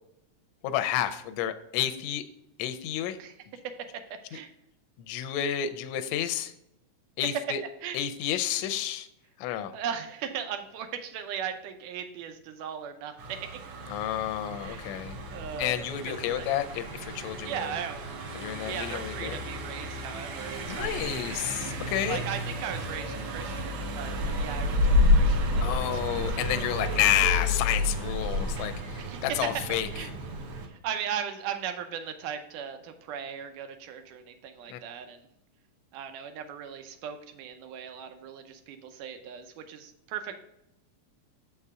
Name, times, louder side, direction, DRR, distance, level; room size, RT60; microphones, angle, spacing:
voice 1, 0.6-2.2 2.6-3.2 5.0-6.5 7.2-7.6 7.9-9.1 9.4-9.7 13.9-15.2 15.6-17.7 18.3-19.4 20.7-22.2 25.6-29.9 34.7-34.8, left 11 dB, 80° left, 8 dB, 1.6 m, -30 dB
voice 2, 9.7-13.5 14.6-14.9 15.3-16.6 17.4-18.1 18.7-21.1 22.1-26.2 26.5-27.0 29.0-29.5 29.9-30.1 30.6-35.3 35.9-40.4, right 8 dB, 90° right, 7 dB, 2.3 m, -38 dB
Car passing by, 13.2-30.7, left 1 dB, 65° right, 1.5 m, -30 dB
6.8 x 5.5 x 3.6 m, 0.81 s
omnidirectional pair, 3.6 m